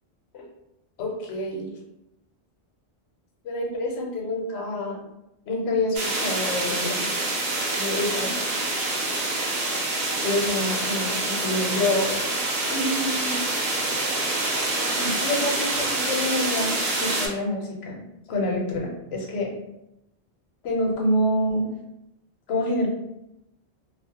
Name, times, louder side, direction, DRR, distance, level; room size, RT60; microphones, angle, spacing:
voice 1, 1.0-1.7 3.4-5.0 5.5-7.1 7.8-8.3 10.2-12.2 12.7-13.4 15.0-16.7 17.0-18.0 18.3-19.5 20.6-21.7 22.5-22.9, left 1 dB, 75° left, -1 dB, 0.9 m, -27 dB
sound 1, 5.9-17.3, right 2 dB, 70° right, 0.8 m, -26 dB
2.4 x 2.0 x 2.7 m, 0.87 s
omnidirectional pair, 1.1 m